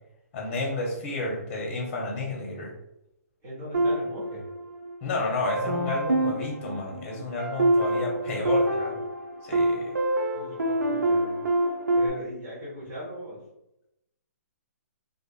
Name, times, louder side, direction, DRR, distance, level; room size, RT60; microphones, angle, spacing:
voice 1, 0.3-2.7 5.0-8.6 9.4-9.8, left 2 dB, 40° left, -2 dB, 0.7 m, -31 dB
voice 2, 3.4-4.5 8.2-8.9 10.3-11.4 11.9-13.4, equal, 45° right, -9 dB, 1.3 m, -39 dB
sound 1, 3.7-5.0 5.5-12.1, right 1 dB, 90° right, 0.6 m, -26 dB
2.5 x 2.4 x 2.3 m, 0.85 s
hypercardioid pair, 140°, 9 cm